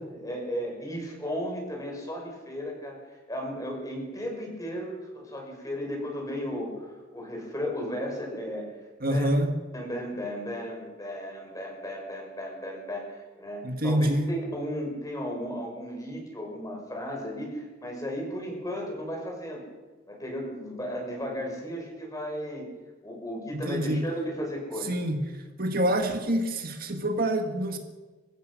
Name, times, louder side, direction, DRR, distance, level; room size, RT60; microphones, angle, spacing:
voice 1, 0.2-8.7 9.1-9.3 9.7-19.7 20.1-22.7 23.0-25.0, equal, 20° left, 0 dB, 6.0 m, -35 dB
voice 2, 9.0-9.6 13.6-14.3 23.5-24.1 24.9-25.2 25.6-27.8, right 1 dB, 50° right, 5 dB, 1.8 m, -26 dB
27.0 x 15.5 x 6.4 m, 1.3 s
head